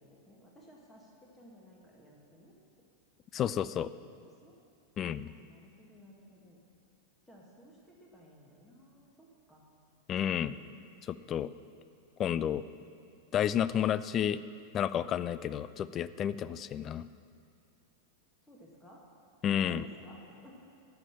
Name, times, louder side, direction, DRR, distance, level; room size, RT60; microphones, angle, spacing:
voice 1, 0.0-2.6 3.7-4.5 5.2-6.6 7.3-9.6 10.3-10.8 18.4-19.0 19.6-20.5, equal, 10° left, -3 dB, 1.7 m, -56 dB
voice 2, 3.3-3.9 5.0-5.3 10.1-10.5 11.1-11.5 12.2-12.6 13.3-14.4 14.7-17.1 19.4-19.8, left 9 dB, 30° left, 16 dB, 0.3 m, -31 dB
11.0 x 5.8 x 8.6 m, 2.4 s
figure-of-eight pair, 90°, 0 cm